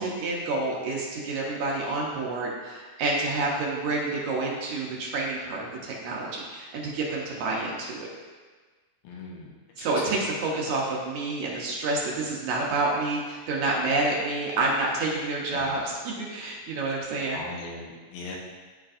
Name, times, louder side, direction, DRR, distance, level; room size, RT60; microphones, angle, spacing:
voice 1, 0.0-8.1 9.8-17.4, right 2 dB, 70° right, -3 dB, 2.1 m, -28 dB
voice 2, 9.0-9.5 9.8-10.0 15.5-15.8 17.3-18.4, left 3 dB, 85° left, -2 dB, 2.8 m, -39 dB
13.0 x 4.5 x 2.6 m, 1.4 s
omnidirectional pair, 3.9 m